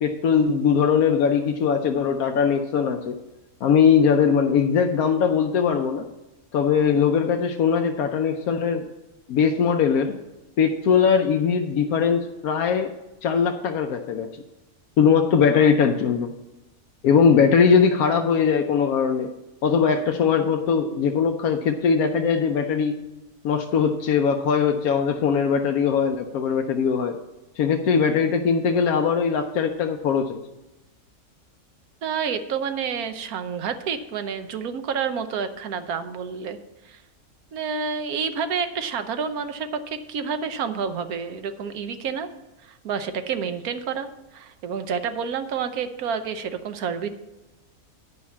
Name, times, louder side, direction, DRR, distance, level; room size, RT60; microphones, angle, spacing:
voice 1, 0.0-3.2 3.6-6.1 6.5-8.8 9.3-10.2 10.6-12.9 13.2-14.3 15.0-16.4 17.0-19.3 19.6-23.0 23.4-27.2 27.6-30.4, left 6 dB, 85° left, 5 dB, 1.1 m, -20 dB
voice 2, 32.0-36.6 36.8-37.0 37.5-42.3 42.6-44.1 44.3-47.1, right 6 dB, 85° right, 9 dB, 1.3 m, -29 dB
9.6 x 5.6 x 7.2 m, 1.0 s
omnidirectional pair, 1.5 m